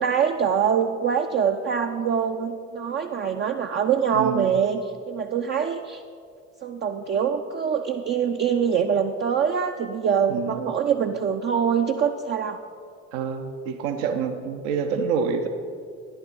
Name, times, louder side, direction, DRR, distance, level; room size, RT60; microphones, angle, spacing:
voice 1, 0.0-6.0 6.6-12.6, right 7 dB, 30° right, 5 dB, 0.5 m, -24 dB
voice 2, 4.1-4.5 10.3-10.6 13.1-15.5, right 6 dB, 60° right, 6 dB, 0.8 m, -27 dB
12.5 x 10.5 x 4.0 m, 2.2 s
figure-of-eight pair, 55°, 38 cm